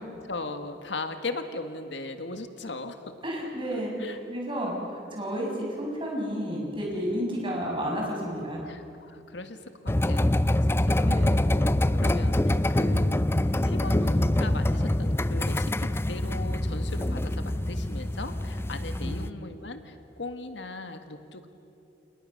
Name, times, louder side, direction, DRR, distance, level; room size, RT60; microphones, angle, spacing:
voice 1, 0.2-3.1 3.7-4.2 8.7-9.6 9.8-11.3 11.9-21.5, left 2 dB, 75° left, 7 dB, 1.8 m, -38 dB
voice 2, 3.2-8.6 11.0-11.4 19.0-19.2, equal, 30° right, -1 dB, 6.5 m, -31 dB
sound 1, 9.9-19.3, left 1 dB, 15° left, 0.5 m, -25 dB
29.0 x 29.0 x 6.7 m, 3.0 s
head